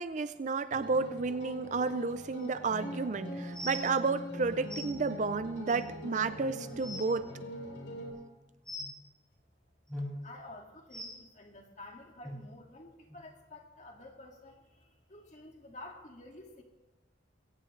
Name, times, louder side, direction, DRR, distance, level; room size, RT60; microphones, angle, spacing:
voice 1, 0.0-7.3, right 4 dB, 40° right, 12 dB, 0.4 m, -32 dB
sound 1, 0.7-8.1, equal, 80° left, 5.0 m, -42 dB
sound 2, 3.5-3.8 4.7-4.8 5.7-5.8 6.3-6.4 6.7-7.0 8.6-8.9 9.9-10.1 10.9-11.1 12.2-12.3 13.1-13.2 13.8-13.9, left 1 dB, 5° left, 5.2 m, -40 dB
voice 2, 10.2-16.6, left 2 dB, 40° left, 2 dB, 2.0 m, -50 dB
21.5 x 17.0 x 3.2 m, 1.1 s
head